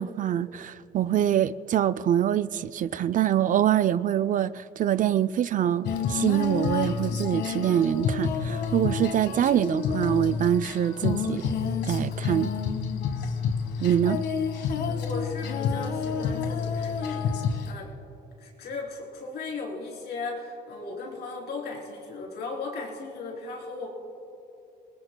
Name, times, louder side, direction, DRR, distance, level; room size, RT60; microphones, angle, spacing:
voice 1, 0.0-11.5 11.9-12.5 13.8-14.2, right 10 dB, 50° right, 0.4 m, -25 dB
Female singing, 5.8-17.7, left 6 dB, 85° left, 1.3 m, -29 dB
voice 2, 14.8-17.9 18.4-23.9, left 3 dB, 70° left, 3.6 m, -37 dB
28.0 x 20.0 x 2.3 m
cardioid pair, 115°, 17 cm